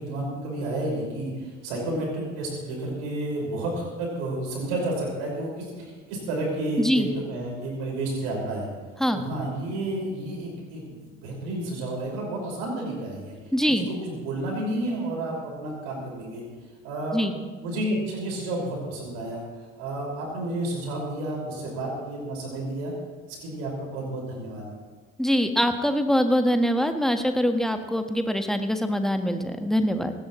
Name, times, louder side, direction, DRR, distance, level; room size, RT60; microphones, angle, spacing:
voice 1, 0.0-8.7 9.1-13.5 13.8-16.5 16.8-17.2 17.6-19.4 19.8-22.9 23.3-24.7, right 1 dB, 65° right, -2 dB, 5.4 m, -31 dB
voice 2, 6.8-7.1 9.0-9.2 13.5-13.9 17.1-17.3 25.2-30.1, equal, ahead, 7 dB, 1.4 m, -23 dB
19.5 x 17.5 x 3.1 m, 1.4 s
figure-of-eight pair, 55°, 36 cm